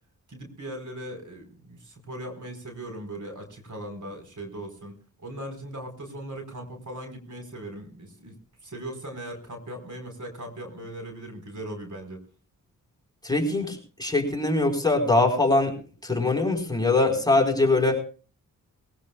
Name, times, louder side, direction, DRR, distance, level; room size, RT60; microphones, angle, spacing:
voice 1, 0.3-12.2, right 1 dB, 50° right, 4 dB, 4.6 m, -39 dB
voice 2, 13.2-15.8 16.0-18.0, left 2 dB, 10° left, 2 dB, 4.6 m, -22 dB
22.0 x 16.5 x 2.4 m, 0.37 s
supercardioid pair, 45°, 37 cm